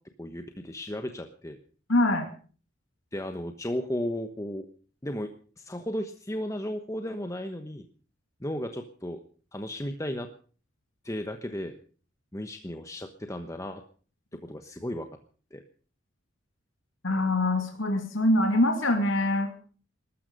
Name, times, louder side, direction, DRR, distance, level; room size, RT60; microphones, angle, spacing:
voice 1, 0.2-1.6 3.1-4.7 5.0-5.3 5.6-7.8 8.4-9.2 9.5-10.3 11.0-11.7 12.3-13.8 14.4-15.1 15.5-15.6, left 1 dB, 15° left, 7 dB, 1.1 m, -34 dB
voice 2, 1.9-2.3 17.0-19.5, left 1 dB, 80° left, 4 dB, 2.6 m, -24 dB
20.0 x 13.0 x 5.4 m, 0.41 s
head